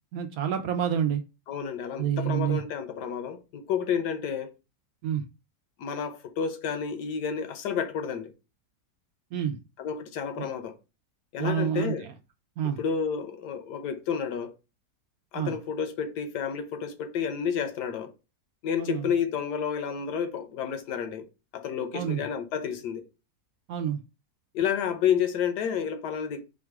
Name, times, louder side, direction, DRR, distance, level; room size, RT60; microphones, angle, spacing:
voice 1, 0.1-1.2 2.0-2.6 5.0-5.2 9.3-9.6 10.4-10.5 11.4-11.9 12.6-12.8 15.3-15.6 18.8-19.1 21.9-22.2 23.7-24.0, right 8 dB, 70° right, 0.9 m, -28 dB
voice 2, 1.5-4.5 5.8-8.3 9.8-10.7 11.3-12.1 12.8-14.5 15.3-18.1 18.6-21.3 21.5-23.0 24.5-26.4, left 7 dB, 75° left, 1.3 m, -30 dB
4.8 x 2.3 x 4.5 m
omnidirectional pair, 1.8 m